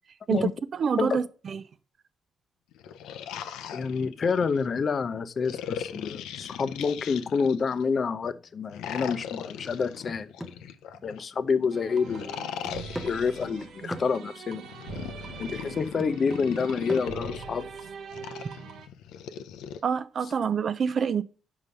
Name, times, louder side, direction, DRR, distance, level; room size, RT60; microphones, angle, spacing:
voice 1, 0.3-1.6 19.8-21.2, right 7 dB, 50° right, 0.4 m, -27 dB
sound 1, 2.7-4.6 5.4-7.8 8.7-11.2 12.0-13.6 14.6-17.4 18.1-19.8, left 9 dB, 90° left, 0.5 m, -39 dB
voice 2, 3.7-10.3 11.0-12.4 13.0-14.6 15.4-17.7, left 5 dB, 45° left, 0.6 m, -28 dB
sound 2, 8.2-8.5 9.0-9.2 9.7-11.7 12.0-12.1 12.6-14.3 14.9-15.2 16.0-17.0, equal, ahead, 0.7 m, -42 dB
sound 3, 11.7-18.9, right 5 dB, 75° right, 0.8 m, -42 dB
5.4 x 4.8 x 5.3 m
cardioid pair, 90°, 0 cm